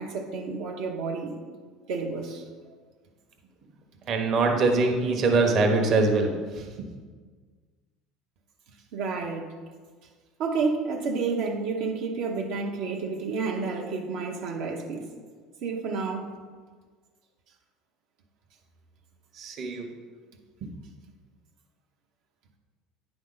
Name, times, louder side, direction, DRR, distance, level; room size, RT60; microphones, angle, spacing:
voice 1, 0.0-1.4 1.9-2.5 8.9-9.5 10.4-15.1 15.6-16.4, right 4 dB, 70° right, 0 dB, 0.9 m, -30 dB
voice 2, 4.1-6.9 19.3-19.9, right 3 dB, 45° right, 3 dB, 1.1 m, -23 dB
9.7 x 5.0 x 3.9 m, 1.5 s
supercardioid pair, 125°, 0 cm